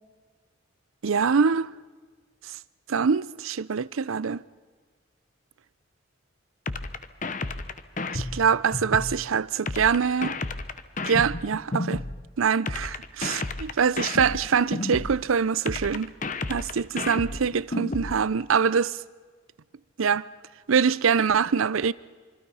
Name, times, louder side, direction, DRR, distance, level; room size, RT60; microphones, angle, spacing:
voice 1, 1.0-1.7 2.9-4.4 8.1-10.4 11.0-12.0 12.4-16.1 16.5-19.0 20.0-20.3 20.7-21.9, right 6 dB, 80° right, 0.6 m, -24 dB
sound 1, 6.7-9.1 9.7-12.1 12.7-15.1 15.7-18.1, left 2 dB, 40° left, 0.9 m, -31 dB
25.0 x 25.0 x 5.6 m
head